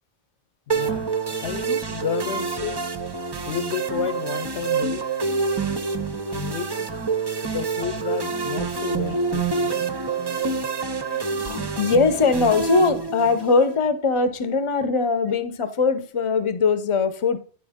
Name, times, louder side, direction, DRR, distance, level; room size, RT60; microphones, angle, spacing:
voice 1, 0.7-1.0 1.4-2.9 3.4-5.1 6.3-6.8 7.4-9.8, left 9 dB, 80° left, 1.0 m, -31 dB
sound 1, 0.7-13.7, right 4 dB, 30° right, 0.5 m, -27 dB
voice 2, 11.1-17.4, left 4 dB, 30° left, 0.7 m, -21 dB
9.9 x 4.7 x 3.6 m
omnidirectional pair, 1.1 m